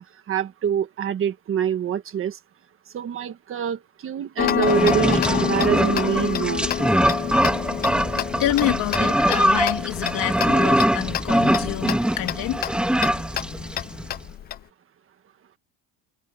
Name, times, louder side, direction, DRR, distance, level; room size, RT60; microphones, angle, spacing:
voice 1, 0.3-2.4 2.9-6.7, right 8 dB, 30° right, 1.6 m, -25 dB
Tick-tock, 4.4-14.6, left 11 dB, 25° left, 0.3 m, -28 dB
sound 1, 4.6-14.1, right 1 dB, ahead, 1.5 m, -23 dB
voice 2, 8.4-12.7, left 14 dB, 50° left, 2.7 m, -27 dB
cardioid pair, 170°, 43 cm